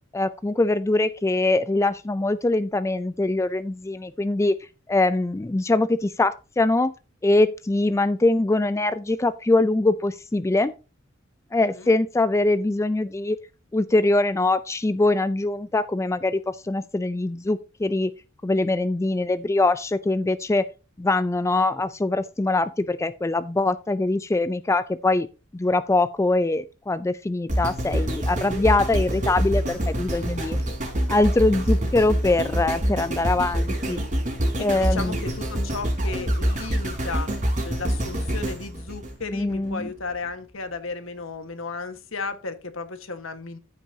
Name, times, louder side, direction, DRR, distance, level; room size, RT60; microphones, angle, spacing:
voice 1, 0.1-4.6 4.9-6.9 7.2-10.7 11.5-13.4 13.7-18.1 18.4-20.6 21.0-25.3 25.5-30.6 31.1-34.0 34.6-35.2 39.3-39.9, left 2 dB, 15° left, 0.4 m, -23 dB
sound 1, 27.5-39.7 40.2-40.3, equal, 40° right, 4.2 m, -26 dB
voice 2, 34.6-37.3 37.6-43.6, left 4 dB, 80° left, 1.5 m, -34 dB
14.0 x 6.1 x 2.7 m
head